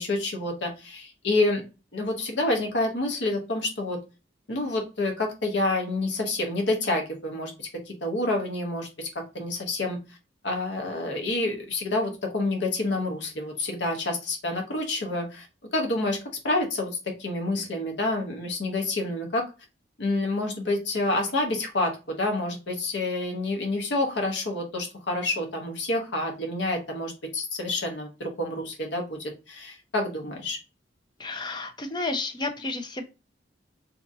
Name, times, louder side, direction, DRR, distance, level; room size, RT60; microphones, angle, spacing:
voice 1, 0.0-1.6 1.9-4.0 4.5-10.0 10.4-15.5 15.7-16.2 16.4-19.4 20.0-30.6, left 2 dB, 70° left, 2 dB, 0.9 m, -28 dB
voice 2, 31.2-33.0, left 3 dB, 25° left, 7 dB, 0.4 m, -31 dB
2.8 x 2.6 x 3.6 m, 0.29 s
head